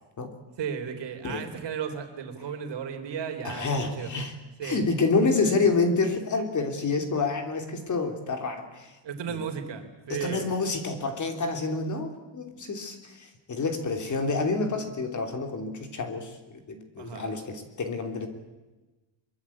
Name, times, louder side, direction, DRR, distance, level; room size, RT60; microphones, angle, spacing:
voice 1, 0.6-4.1 4.6-4.9 9.0-10.5 17.0-17.3, right 7 dB, 60° right, 6 dB, 3.6 m, -35 dB
voice 2, 3.4-4.3 4.6-8.9 9.3-9.4 10.1-16.4 16.7-18.3, left 3 dB, 40° left, 6 dB, 3.3 m, -28 dB
24.0 x 24.0 x 8.6 m, 1.1 s
wide cardioid pair, 175°, 47 cm